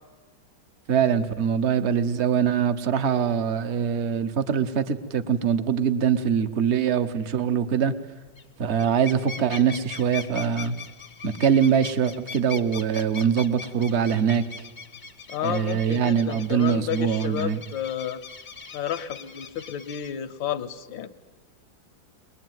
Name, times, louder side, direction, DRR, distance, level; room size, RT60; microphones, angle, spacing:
voice 1, 0.9-7.9 8.6-10.7 11.2-14.4 15.4-17.6, right 7 dB, 45° right, 11 dB, 1.1 m, -23 dB
sound 1, 8.3-8.5 8.7-20.1, left 5 dB, 40° left, 0.7 m, -41 dB
voice 2, 15.3-18.2 18.7-21.1, left 10 dB, 85° left, 7 dB, 1.7 m, -31 dB
22.0 x 21.0 x 9.3 m, 1.3 s
omnidirectional pair, 2.0 m